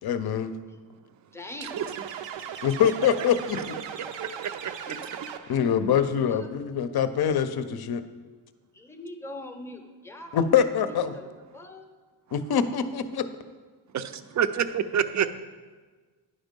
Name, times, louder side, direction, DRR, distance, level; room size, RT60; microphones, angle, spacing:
voice 1, 0.0-0.5 2.6-3.8 5.5-8.0 10.3-11.1 12.3-13.3, left 8 dB, 60° left, 11 dB, 0.6 m, -24 dB
voice 2, 1.3-2.0 4.0-4.2 4.7-5.0 6.3-6.5 8.7-11.3 11.5-11.9, left 1 dB, 5° left, 5 dB, 0.6 m, -42 dB
sound 1, 1.6-5.8, right 8 dB, 85° right, 0.6 m, -38 dB
voice 3, 4.0-5.0 13.9-15.4, right 8 dB, 45° right, 12 dB, 0.4 m, -28 dB
10.0 x 5.3 x 5.2 m, 1.4 s
wide cardioid pair, 145°, 43 cm